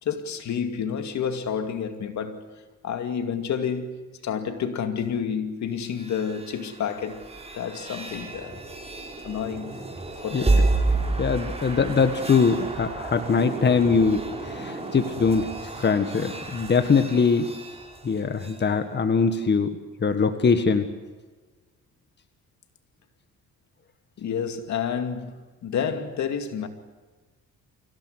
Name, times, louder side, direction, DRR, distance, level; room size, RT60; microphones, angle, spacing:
voice 1, 0.0-2.4 2.8-7.2 7.5-8.6 9.2-9.7 10.2-10.7 24.2-26.7, left 7 dB, 65° left, 2.4 m, -29 dB
sound 1, 5.8-18.6, right 2 dB, 20° right, 4.9 m, -30 dB
voice 2, 10.3-10.7 11.2-15.5 15.8-17.5 18.0-20.9, left 5 dB, 35° left, 1.7 m, -22 dB
25.5 x 16.5 x 9.7 m
cardioid pair, 90°, 30 cm